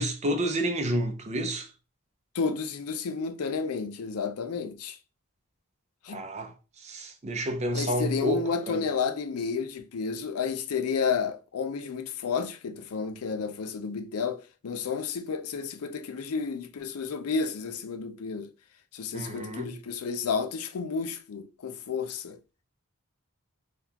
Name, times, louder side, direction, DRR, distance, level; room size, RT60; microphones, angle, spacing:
voice 1, 0.0-1.7 6.1-6.5 6.8-8.8 19.1-19.7, right 1 dB, 30° right, 0.5 m, -30 dB
voice 2, 2.3-5.0 6.0-6.2 7.7-18.5 18.9-22.4, left 5 dB, 85° left, 0.5 m, -31 dB
3.7 x 2.3 x 2.8 m
head